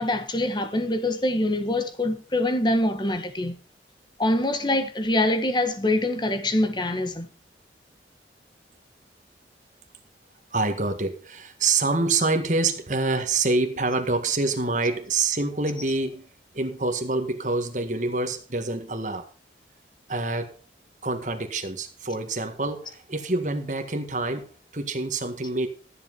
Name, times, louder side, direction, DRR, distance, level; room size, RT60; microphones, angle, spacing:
voice 1, 0.0-3.5 4.2-7.3, left 1 dB, 25° left, 1.5 m, -24 dB
voice 2, 10.5-16.3 16.5-19.3 20.1-20.6 21.0-25.7, right 3 dB, 45° right, 1.8 m, -26 dB
13.5 x 7.8 x 5.5 m
head